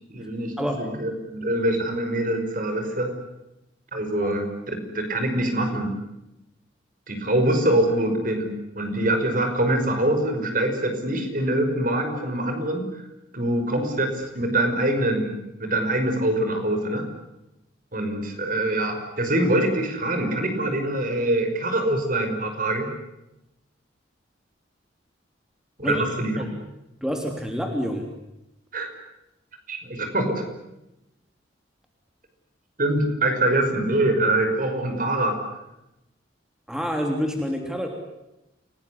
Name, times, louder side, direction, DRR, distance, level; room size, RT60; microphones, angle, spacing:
voice 1, 0.1-3.1 3.9-6.0 7.1-13.0 13.3-15.3 15.6-17.0 17.9-22.9 25.8-26.5 28.7-28.9 29.7-30.4 32.8-35.4, right 1 dB, 45° right, 6 dB, 5.7 m, -24 dB
voice 2, 27.0-28.1 36.7-37.9, equal, 5° right, 3 dB, 3.1 m, -27 dB
28.5 x 19.5 x 9.6 m, 0.91 s
head